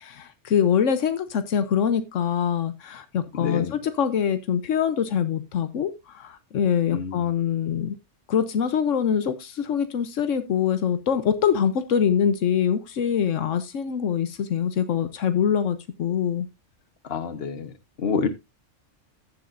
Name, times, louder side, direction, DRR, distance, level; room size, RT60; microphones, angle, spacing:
voice 1, 0.0-8.0 8.3-16.5, left 8 dB, 85° left, 1.2 m, -24 dB
voice 2, 3.4-3.7 6.9-7.2 17.1-17.7 18.0-18.3, left 5 dB, 55° left, 1.3 m, -27 dB
14.5 x 7.3 x 2.5 m
omnidirectional pair, 1.3 m